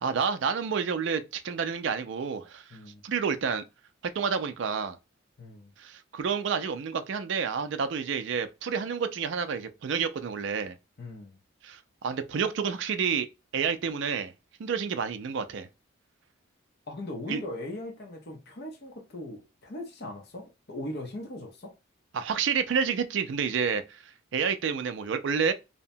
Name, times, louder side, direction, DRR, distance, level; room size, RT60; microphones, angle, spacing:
voice 1, 0.0-2.6 3.0-3.6 4.0-5.0 5.8-10.8 11.6-13.3 13.5-14.3 14.6-15.7 17.3-17.4 22.1-25.5, right 6 dB, 60° right, 0.3 m, -29 dB
voice 2, 2.7-3.0 5.4-5.7 11.0-11.4 16.9-21.7, left 1 dB, 50° left, 0.6 m, -39 dB
2.7 x 2.1 x 2.6 m
head